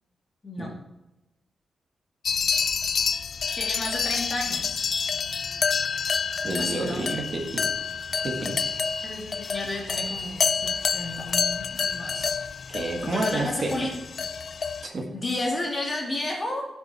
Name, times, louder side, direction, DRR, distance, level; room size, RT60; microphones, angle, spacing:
sound 1, 2.2-14.9, left 6 dB, 45° left, 0.4 m, -28 dB
voice 1, 3.6-4.9 6.6-7.1 9.0-12.4 13.0-13.9 14.2-14.3 15.1-16.7, left 1 dB, 25° left, -1 dB, 2.5 m, -32 dB
voice 2, 6.4-7.7 8.1-8.6 12.7-13.7 14.8-15.0, right 2 dB, 40° right, 1 dB, 1.8 m, -30 dB
16.5 x 6.9 x 4.3 m, 0.94 s
wide cardioid pair, 175°, 0 cm